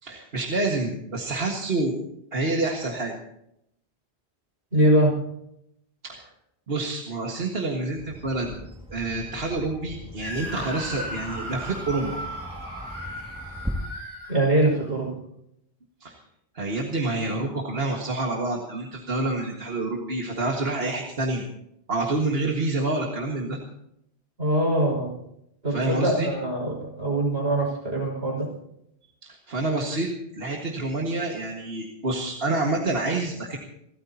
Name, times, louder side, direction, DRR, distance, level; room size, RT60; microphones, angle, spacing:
voice 1, 0.0-2.0 2.3-3.1 6.0-6.2 6.7-8.5 8.9-12.2 16.0-16.2 16.6-21.4 21.9-23.6 25.7-26.3 29.2-33.6, right 2 dB, 65° right, 0 dB, 2.0 m, -28 dB
voice 2, 4.7-5.1 14.3-15.1 24.4-25.1 25.6-28.5, right 1 dB, 85° right, -2 dB, 6.3 m, -23 dB
Bird vocalization bird call bird song, 8.0-13.7, equal, 5° right, 1.9 m, -40 dB
Screaming, 10.2-15.0, equal, 50° left, 7.5 m, -37 dB
28.5 x 13.5 x 2.9 m, 0.77 s
omnidirectional pair, 1.1 m